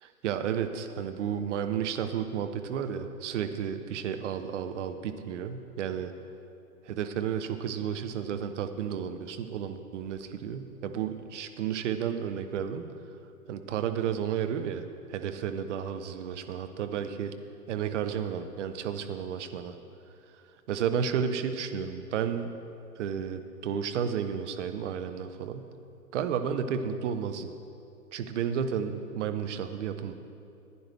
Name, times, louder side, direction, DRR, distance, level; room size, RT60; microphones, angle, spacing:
voice 1, 0.0-6.1 6.9-12.9 13.5-14.8 15.1-17.3 17.7-19.7 20.7-22.5 23.0-25.7 26.1-27.5 28.1-30.1, right 8 dB, 50° right, 9 dB, 0.9 m, -32 dB
15.0 x 9.8 x 3.4 m, 2.7 s
hypercardioid pair, 125°, 47 cm